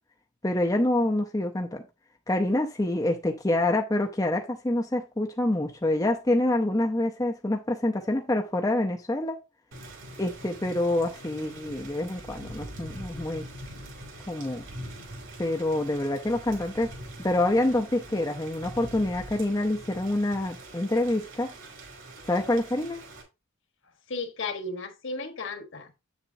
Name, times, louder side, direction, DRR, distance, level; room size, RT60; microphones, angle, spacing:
voice 1, 0.4-1.8 2.3-9.4 10.2-13.5 14.3-14.6 15.4-16.9 17.2-21.5 22.3-23.0, left 1 dB, 15° left, 0.6 m, -26 dB
Thunder / Rain, 9.7-23.2, right 1 dB, 55° right, 2.9 m, -43 dB
voice 2, 24.1-26.0, left 3 dB, 55° left, 1.3 m, -35 dB
8.2 x 6.9 x 2.7 m
head